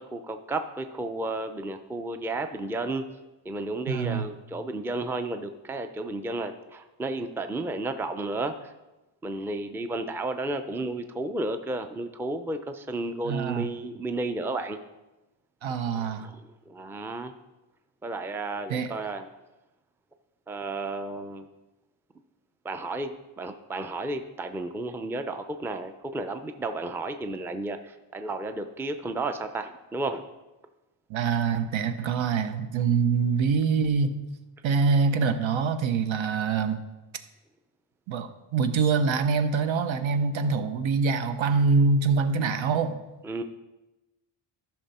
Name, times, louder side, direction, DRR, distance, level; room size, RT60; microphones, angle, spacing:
voice 1, 0.0-3.0 3.4-8.7 9.2-14.8 15.9-16.4 16.7-17.3 18.0-19.3 20.5-21.5 22.6-30.2 43.2-43.4, right 2 dB, 5° right, 7 dB, 0.4 m, -32 dB
voice 2, 3.9-4.3 13.2-13.7 15.6-16.3 18.7-18.9 31.1-34.2 34.6-36.8 38.1-43.0, right 5 dB, 70° right, 8 dB, 1.0 m, -25 dB
13.5 x 5.9 x 4.2 m, 1.0 s
cardioid pair, 125°, 48 cm